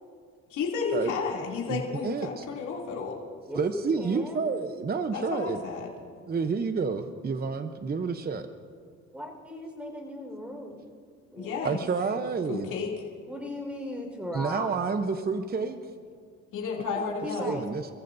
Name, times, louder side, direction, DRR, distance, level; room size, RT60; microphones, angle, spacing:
voice 1, 0.5-3.1 5.1-5.9 11.4-11.8 12.5-12.9 16.5-17.5, left 5 dB, 80° left, -3 dB, 2.9 m, -32 dB
voice 2, 1.7-2.5 3.5-5.6 6.3-8.5 11.6-12.7 14.3-15.8 17.0-17.1 17.4-17.9, right 5 dB, 30° right, 8 dB, 0.8 m, -29 dB
voice 3, 3.5-4.5 9.1-10.8 11.3-11.7 13.2-15.0 17.2-17.6, left 1 dB, 5° right, 2 dB, 4.5 m, -37 dB
28.0 x 15.0 x 2.7 m, 2.1 s
cardioid pair, 90°, 30 cm